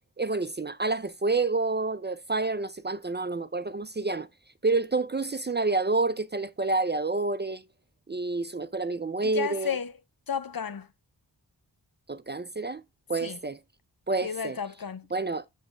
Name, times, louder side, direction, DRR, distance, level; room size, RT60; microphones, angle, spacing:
voice 1, 0.2-4.3 4.6-7.6 8.1-9.8 12.1-12.8 13.1-13.6 14.1-14.6 15.1-15.5, right 3 dB, 25° right, 0.5 m, -28 dB
voice 2, 9.2-9.9 10.3-10.9 13.2-13.4 14.2-15.1, left 7 dB, 55° left, 0.8 m, -32 dB
6.4 x 6.0 x 3.4 m
cardioid pair, 40°, 42 cm